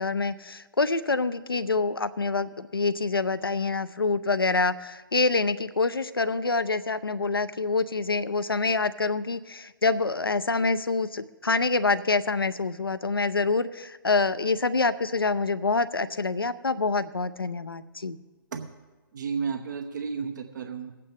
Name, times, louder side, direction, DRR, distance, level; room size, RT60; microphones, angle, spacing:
voice 1, 0.0-18.2, left 3 dB, 80° left, 14 dB, 0.6 m, -26 dB
voice 2, 19.1-20.9, right 5 dB, 55° right, 5 dB, 0.9 m, -32 dB
20.0 x 8.5 x 3.4 m, 1.2 s
figure-of-eight pair, 125°, 12 cm